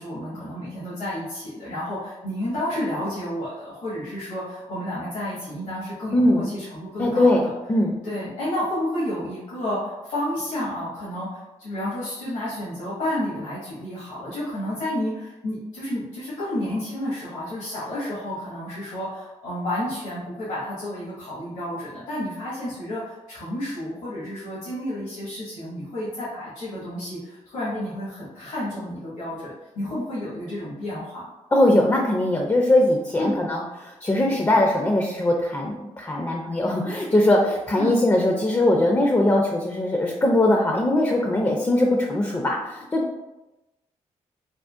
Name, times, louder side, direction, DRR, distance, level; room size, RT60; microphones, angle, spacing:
voice 1, 0.0-7.4 8.0-31.3 33.1-33.3 37.8-37.9, left 1 dB, 85° left, -11 dB, 1.5 m, -31 dB
voice 2, 6.1-6.5 7.0-8.0 31.5-43.2, left 1 dB, 20° left, 1 dB, 0.4 m, -21 dB
3.7 x 2.1 x 2.4 m, 1.0 s
cardioid pair, 65°, 13 cm